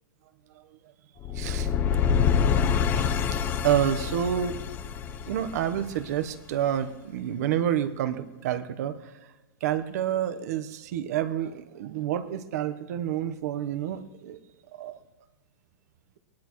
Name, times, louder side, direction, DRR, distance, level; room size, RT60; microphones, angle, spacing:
sound 1, 1.2-6.2, left 7 dB, 15° left, 0.5 m, -26 dB
voice 1, 1.3-1.7 2.0-2.1 2.9-4.6 5.2-9.0 9.6-14.4 14.7-15.0, right 10 dB, 50° right, 10 dB, 1.1 m, -29 dB
23.0 x 19.0 x 3.1 m, 1.2 s
supercardioid pair, 175°, 11 cm